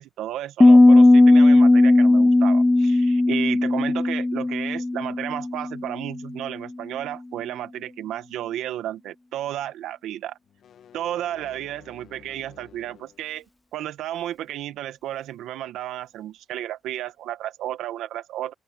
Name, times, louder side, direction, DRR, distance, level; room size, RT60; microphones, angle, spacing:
voice 1, 0.0-10.4 10.9-13.5 13.7-18.5, right 12 dB, 85° right, 1.6 m, -33 dB
Piano, 0.6-6.2, left 2 dB, 15° left, 0.3 m, -16 dB
sound 1, 10.4-13.2, left 9 dB, 65° left, 2.0 m, -51 dB
open air
cardioid pair, 90°, 0 cm